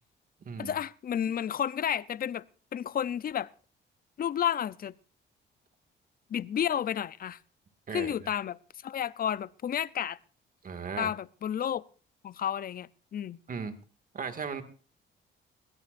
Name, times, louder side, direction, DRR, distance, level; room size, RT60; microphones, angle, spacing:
voice 1, 0.6-2.4 2.7-3.5 4.2-4.9 6.3-7.4 7.9-10.2 11.0-11.8 12.2-13.4, left 9 dB, 45° left, 20 dB, 0.6 m, -31 dB
voice 2, 7.9-8.3 10.6-11.1 13.5-13.8 14.1-14.6, right 5 dB, 45° right, 8 dB, 2.1 m, -36 dB
21.5 x 17.0 x 2.6 m, 0.40 s
cardioid pair, 90°, 20 cm